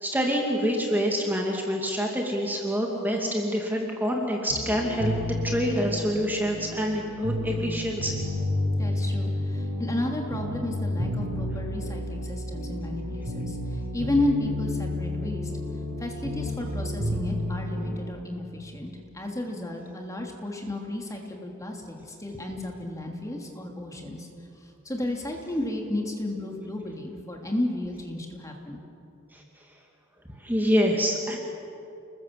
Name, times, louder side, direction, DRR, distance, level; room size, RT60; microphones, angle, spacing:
voice 1, 0.0-8.2 30.4-31.4, equal, 10° right, 0 dB, 2.4 m, -26 dB
sound 1, 4.5-18.0, left 1 dB, 80° right, 7.9 m, -31 dB
voice 2, 8.8-15.5 16.0-24.3 24.6-28.8, left 1 dB, 15° left, 1 dB, 3.0 m, -32 dB
29.5 x 21.0 x 7.7 m, 2.7 s
head